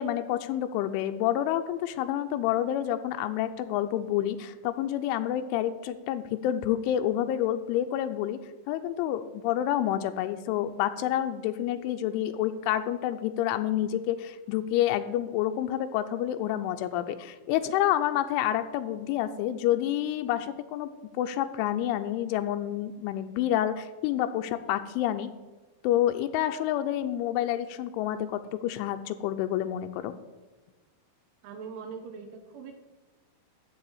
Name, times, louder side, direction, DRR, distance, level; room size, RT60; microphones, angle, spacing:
voice 1, 0.0-8.4 8.7-20.9 21.2-25.3 25.8-30.1, left 12 dB, 85° left, 8 dB, 3.0 m, -28 dB
voice 2, 31.4-32.7, right 5 dB, 80° right, 5 dB, 3.4 m, -41 dB
12.5 x 4.8 x 8.4 m, 1.2 s
omnidirectional pair, 5.5 m